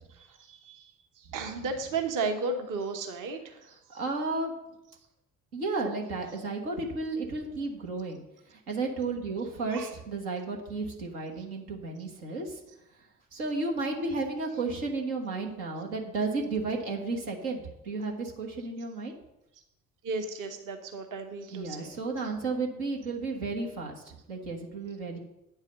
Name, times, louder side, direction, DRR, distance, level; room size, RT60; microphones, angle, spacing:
voice 1, 0.1-0.9 1.2-4.0 9.7-9.9 20.0-21.9, right 4 dB, 45° right, 5 dB, 1.1 m, -34 dB
voice 2, 3.9-4.5 5.5-8.2 8.5-12.6 13.3-19.1 21.5-25.2, right 3 dB, 75° right, 0 dB, 1.4 m, -33 dB
9.1 x 4.8 x 6.7 m, 0.89 s
figure-of-eight pair, 50°, 43 cm